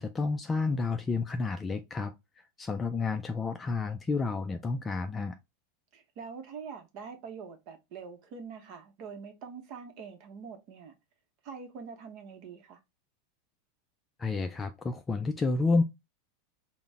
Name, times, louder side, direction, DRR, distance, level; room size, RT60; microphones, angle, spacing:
voice 1, 0.0-5.4 14.2-15.8, left 3 dB, 15° left, 0.3 m, -30 dB
voice 2, 5.9-10.9 11.4-12.8, right 6 dB, 50° right, 0.8 m, -44 dB
3.9 x 2.1 x 3.4 m
supercardioid pair, 130°, 0 cm